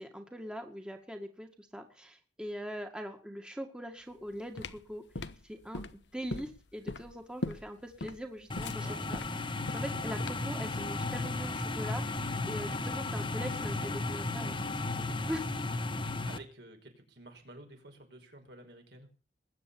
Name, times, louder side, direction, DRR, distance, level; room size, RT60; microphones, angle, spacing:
voice 1, 0.0-14.6 15.0-15.5, equal, 5° right, 4 dB, 2.0 m, -42 dB
sound 1, 4.1-10.6, left 2 dB, 85° left, 1.1 m, -40 dB
sound 2, 8.5-16.4, left 2 dB, 30° left, 1.4 m, -34 dB
voice 2, 8.8-9.2 16.2-19.1, right 2 dB, 65° right, 4 dB, 5.2 m, -51 dB
21.0 x 9.2 x 7.2 m, 0.38 s
head